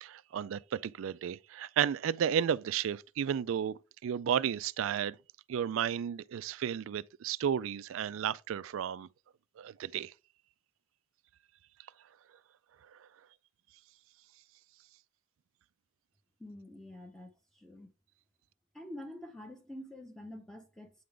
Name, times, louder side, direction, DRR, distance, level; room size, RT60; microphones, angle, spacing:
voice 1, 0.0-5.2 5.5-9.1 9.6-10.1, right 8 dB, 65° right, 0.3 m, -33 dB
voice 2, 16.4-17.9 18.7-21.0, left 1 dB, 5° left, 0.7 m, -47 dB
8.5 x 3.8 x 3.3 m
head